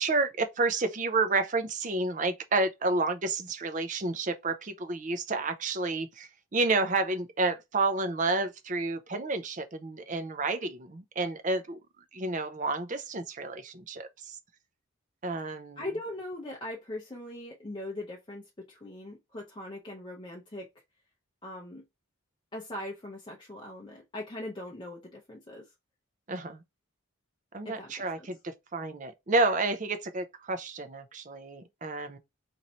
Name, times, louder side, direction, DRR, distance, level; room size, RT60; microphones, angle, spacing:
voice 1, 0.0-11.8 12.1-14.4 15.2-15.8 26.3-26.6 27.5-32.2, right 3 dB, 35° right, 0.5 m, -30 dB
voice 2, 15.8-20.8 21.4-21.8 22.5-25.7 27.6-28.3, left 1 dB, 20° left, 0.6 m, -40 dB
3.1 x 2.6 x 4.1 m
head